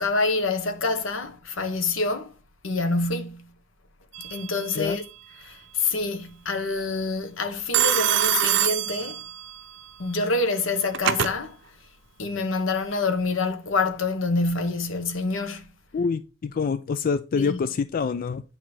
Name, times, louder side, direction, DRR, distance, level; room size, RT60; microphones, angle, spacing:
voice 1, 0.0-2.3 2.6-3.5 4.2-5.0 5.4-9.2 10.0-11.6 12.2-15.6 17.3-17.7, left 3 dB, 75° left, 1.2 m, -26 dB
Telephone, 4.1-4.7 7.7-9.6 10.6-11.3, right 11 dB, 65° right, 0.5 m, -24 dB
voice 2, 15.9-18.4, left 5 dB, 45° left, 0.4 m, -26 dB
9.2 x 3.2 x 5.9 m
head